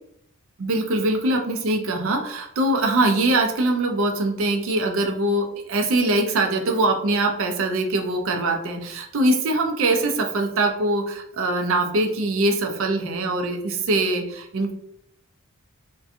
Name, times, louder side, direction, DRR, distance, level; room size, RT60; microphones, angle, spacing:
voice 1, 0.6-14.7, right 2 dB, 60° right, 4 dB, 0.4 m, -22 dB
2.5 x 2.2 x 2.4 m, 0.73 s
head